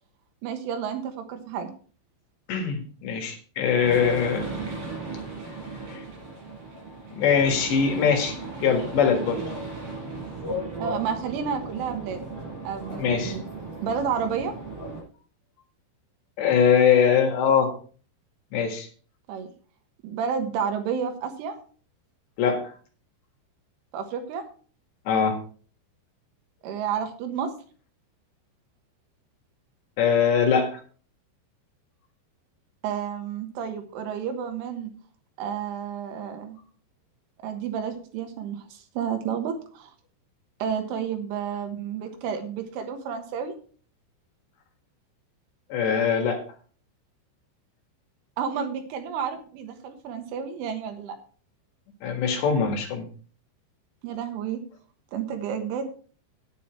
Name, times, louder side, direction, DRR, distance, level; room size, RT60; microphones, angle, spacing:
voice 1, 0.4-1.7 10.8-12.3 12.7-13.4 13.8-14.5 19.3-19.5 20.0-21.6 23.9-24.5 26.6-27.5 32.8-34.9 35.4-36.6 37.4-39.9 40.6-43.5 48.4-51.2 54.0-54.6 55.1-55.9, right 7 dB, 90° right, 6 dB, 3.9 m, -31 dB
voice 2, 2.5-4.5 5.9-6.0 7.2-9.4 13.0-13.4 16.4-17.7 18.5-18.9 22.4-22.7 25.1-25.4 30.0-30.8 45.7-46.4 52.0-53.1, left 7 dB, 70° left, 4 dB, 3.7 m, -22 dB
sound 1, 3.7-15.0, right 2 dB, 45° right, 6.7 m, -36 dB
9.7 x 9.0 x 4.5 m, 0.42 s
omnidirectional pair, 5.5 m